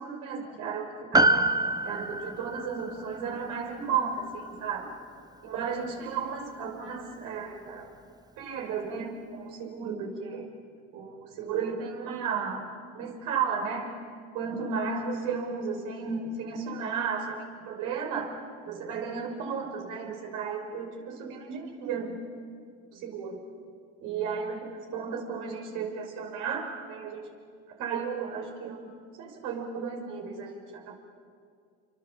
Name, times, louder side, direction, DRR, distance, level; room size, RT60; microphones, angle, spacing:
voice 1, 0.0-1.5 1.8-4.9 5.4-7.9 8.4-10.5 10.9-12.7 12.9-14.0 14.3-18.4 18.6-22.2 22.9-23.4 24.0-27.3 27.8-30.9, right 6 dB, 65° right, 2 dB, 5.8 m, -34 dB
Piano, 1.1-5.7 6.0-6.1, right 2 dB, 10° right, 1.5 m, -28 dB
28.0 x 24.0 x 7.7 m, 2.1 s
hypercardioid pair, 80°, 33 cm